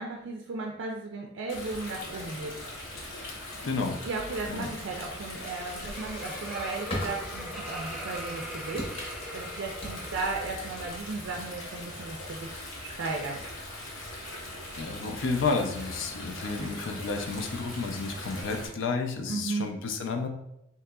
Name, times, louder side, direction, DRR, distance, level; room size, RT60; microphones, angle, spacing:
voice 1, 0.0-2.7 4.0-12.5 12.8-13.4 19.3-19.7, right 3 dB, 70° right, 0 dB, 0.4 m, -35 dB
Stream, 1.5-18.7, left 1 dB, 90° left, 0.9 m, -41 dB
voice 2, 3.6-4.0 4.5-4.7 14.8-20.3, left 4 dB, 70° left, 4 dB, 0.4 m, -31 dB
sound 1, 5.2-12.5, equal, 30° left, 0.8 m, -42 dB
Laughter, 5.5-10.7, equal, 5° right, 0.4 m, -42 dB
3.7 x 2.9 x 2.2 m, 0.80 s
head